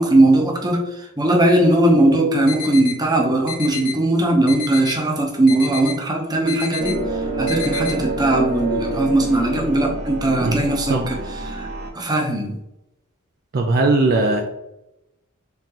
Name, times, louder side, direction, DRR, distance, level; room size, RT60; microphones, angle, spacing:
voice 1, 0.0-7.1 7.4-11.2 11.5-11.7 11.9-12.6, right 1 dB, 20° right, 0 dB, 0.7 m, -19 dB
sound 1, 2.5-3.0 3.5-4.0 4.5-5.0 5.5-6.0 6.5-6.9 7.5-7.9, left 8 dB, 40° left, 1.0 m, -30 dB
sound 2, 6.8-11.9, right 2 dB, 90° right, 1.1 m, -27 dB
voice 2, 10.4-11.1 13.5-14.4, right 2 dB, 45° right, 2 dB, 0.4 m, -19 dB
3.7 x 3.7 x 2.9 m, 0.89 s
head